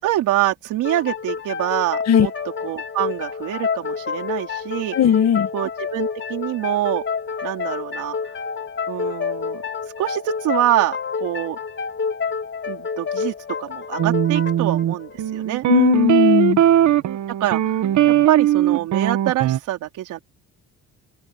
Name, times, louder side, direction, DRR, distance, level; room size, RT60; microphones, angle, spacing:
voice 1, 0.0-2.3 2.6-5.0 5.5-7.0 7.4-8.2 8.9-9.6 10.0-11.6 12.7-15.7 17.4-17.8 18.3-20.2, right 14 dB, 90° right, 4.1 m, -25 dB
sound 1, 0.8-16.2, left 5 dB, 40° left, 5.6 m, -29 dB
voice 2, 4.9-5.5 15.7-16.6, left 9 dB, 60° left, 1.4 m, -17 dB
sound 2, 14.0-19.6, right 11 dB, 70° right, 1.5 m, -19 dB
open air
cardioid pair, 90°, 30 cm